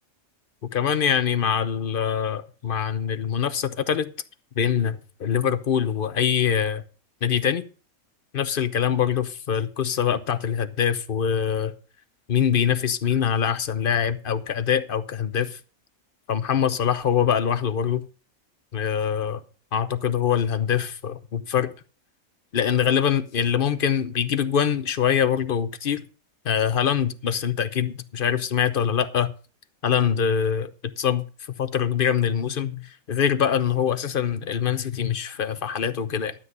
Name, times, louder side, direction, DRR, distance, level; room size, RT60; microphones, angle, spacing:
voice 1, 0.7-4.1 4.6-6.8 7.2-7.6 8.3-11.7 12.3-15.6 16.3-18.0 18.7-19.4 19.7-21.7 22.5-26.0 26.4-29.3 29.8-30.7 31.0-31.2 31.6-36.3, left 8 dB, 45° left, 0.9 m, -24 dB
12.5 x 8.3 x 5.5 m
omnidirectional pair, 1.5 m